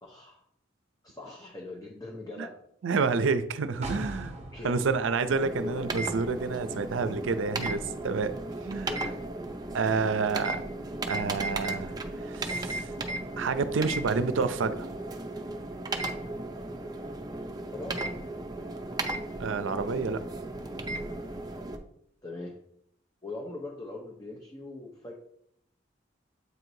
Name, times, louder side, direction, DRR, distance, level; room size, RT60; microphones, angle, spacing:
voice 1, 0.0-0.4 1.0-2.6 4.5-5.1 5.6-5.9 8.9-9.3 17.7-18.1 22.2-22.6 23.2-25.1, left 2 dB, 20° left, 0 dB, 0.7 m, -41 dB
voice 2, 2.8-4.3 4.6-8.3 8.6-8.9 9.7-10.6 11.1-12.9 13.4-14.9 19.4-20.2, right 4 dB, 90° right, 11 dB, 0.5 m, -29 dB
sound 1, 3.8-7.6 7.9-8.0, right 1 dB, 35° right, 0.9 m, -42 dB
sound 2, 5.3-21.8, right 2 dB, 20° right, 0.5 m, -35 dB
8.0 x 4.6 x 2.7 m, 0.71 s
head